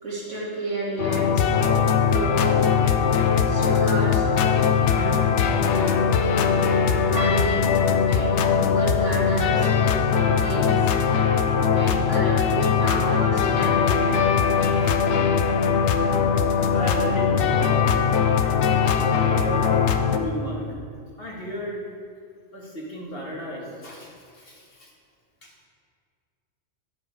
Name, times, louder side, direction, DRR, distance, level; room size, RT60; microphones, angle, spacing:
voice 1, 0.0-1.5 2.1-2.6 3.4-4.3 4.9-5.5 7.1-7.8 8.1-10.9 11.7-14.3, right 2 dB, 85° right, -6 dB, 2.6 m, -31 dB
sound 1, 1.0-20.2, left 6 dB, 75° left, 0.9 m, -21 dB
voice 2, 6.2-6.9 14.8-15.0 16.7-17.9 19.0-19.7 20.0-20.7 21.2-21.8 22.5-24.9 25.4-25.5, right 1 dB, 55° left, -3 dB, 1.7 m, -35 dB
11.0 x 6.0 x 4.8 m, 2.2 s
omnidirectional pair, 1.2 m